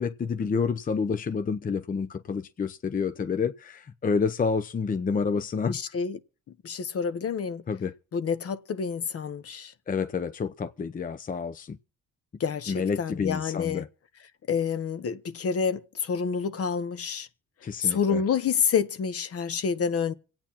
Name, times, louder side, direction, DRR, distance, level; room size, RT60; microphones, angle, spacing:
voice 1, 0.0-5.8 7.7-7.9 9.9-11.8 12.7-13.9 17.6-18.2, left 5 dB, 30° left, 0.6 m, -29 dB
voice 2, 5.7-6.2 6.6-7.6 8.1-9.7 12.4-13.9 14.5-17.3 17.8-20.1, left 6 dB, 50° left, 1.0 m, -28 dB
26.0 x 8.8 x 2.9 m
cardioid pair, 90°, 30 cm